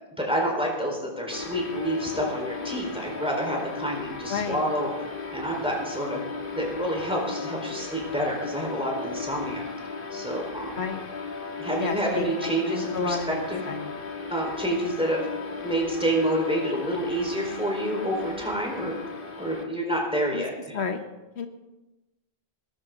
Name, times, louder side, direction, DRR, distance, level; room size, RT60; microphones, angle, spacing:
voice 1, 0.2-4.9 5.3-6.2 6.5-9.6 10.1-10.8 11.6-13.6 14.3-15.3 15.6-18.9 19.4-20.8, right 1 dB, 5° right, -1 dB, 4.5 m, -28 dB
sound 1, 1.3-19.7, left 4 dB, 55° left, 1.8 m, -36 dB
voice 2, 4.3-4.6 10.8-11.0 11.8-14.0 20.3-20.4 20.7-21.0 21.4-21.5, left 5 dB, 85° left, 7 dB, 1.4 m, -31 dB
21.0 x 12.5 x 3.9 m, 1.0 s
omnidirectional pair, 1.1 m